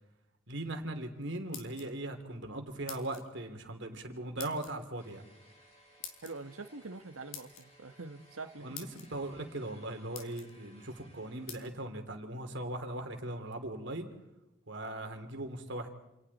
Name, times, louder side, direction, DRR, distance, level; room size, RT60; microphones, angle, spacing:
voice 1, 0.5-5.3 8.6-14.1 14.7-15.9, right 1 dB, 55° right, 3.2 m, -39 dB
sound 1, 1.3-2.2 2.9-3.3 4.4-4.7 6.0-6.3 7.3-7.7 8.4-8.5 8.7-9.1 9.7-9.8 10.1-10.5 11.5-11.6, left 8 dB, 85° left, 3.6 m, -46 dB
sound 2, 5.0-11.5, equal, 30° left, 7.8 m, -61 dB
voice 2, 6.2-8.8, right 3 dB, 85° right, 1.5 m, -45 dB
28.5 x 28.5 x 4.3 m
head